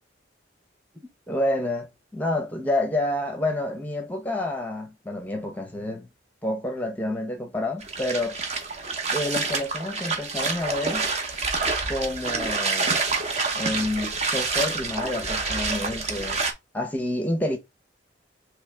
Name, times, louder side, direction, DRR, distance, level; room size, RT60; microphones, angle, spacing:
voice 1, 1.3-1.9 2.1-6.1 6.4-8.4 9.1-11.1 11.9-13.0 13.5-16.4 16.7-17.6, left 1 dB, 10° left, 0.7 m, -28 dB
sound 1, 7.8-16.5, right 4 dB, 35° right, 0.9 m, -27 dB
3.2 x 3.2 x 4.8 m
head